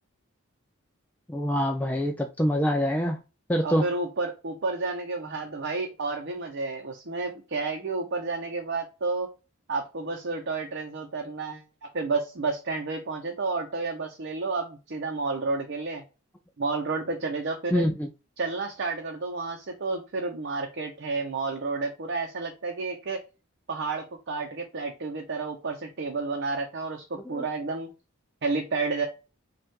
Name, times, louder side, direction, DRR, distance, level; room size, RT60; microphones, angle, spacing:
voice 1, 1.3-3.2 3.5-3.8 17.7-18.1 27.3-27.4, equal, 10° left, 0.3 m, -25 dB
voice 2, 3.6-9.3 9.7-11.6 11.9-16.0 16.6-17.9 18.4-23.2 23.7-27.9 28.4-29.1, right 3 dB, 55° right, 0.7 m, -31 dB
5.4 x 2.4 x 3.6 m
head